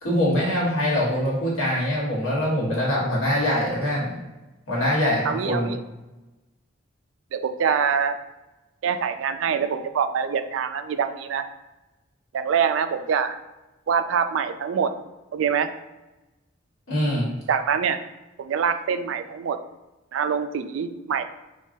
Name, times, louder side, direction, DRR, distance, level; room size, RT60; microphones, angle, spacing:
voice 1, 0.0-4.1 4.7-5.7 16.9-17.3, left 1 dB, 85° left, -5 dB, 1.4 m, -23 dB
voice 2, 5.2-5.8 7.3-8.2 8.8-11.5 12.3-13.4 13.9-14.9 15.3-15.7 17.5-18.0 18.4-19.6 20.1-21.2, right 7 dB, 75° right, 9 dB, 0.3 m, -24 dB
4.6 x 2.3 x 2.6 m, 1.1 s
head